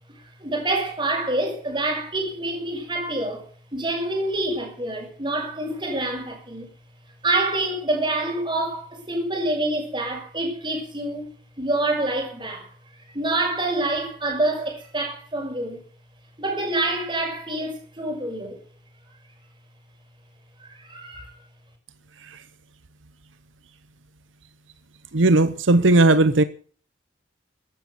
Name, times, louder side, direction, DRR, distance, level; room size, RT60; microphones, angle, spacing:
voice 1, 0.1-6.7 7.2-11.2 11.6-12.7 13.1-15.8 16.4-18.6 20.6-21.3, right 2 dB, 25° right, 6.4 m, -27 dB
voice 2, 25.1-26.4, right 2 dB, 85° right, 0.9 m, -17 dB
15.0 x 12.5 x 6.9 m
head